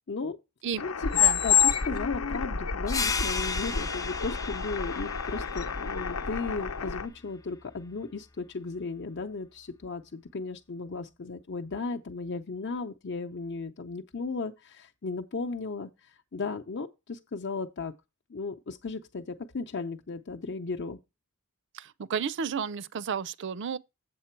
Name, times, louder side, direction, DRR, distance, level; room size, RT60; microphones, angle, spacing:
sound 1, 0.8-7.1, left 7 dB, 90° left, 0.9 m, -28 dB
voice 1, 1.4-17.9 18.3-21.0, left 4 dB, 55° left, 0.7 m, -35 dB
sound 2, 2.9-8.0, left 5 dB, 15° left, 0.5 m, -36 dB
voice 2, 21.7-23.8, right 6 dB, 55° right, 0.5 m, -32 dB
7.8 x 7.4 x 4.5 m
head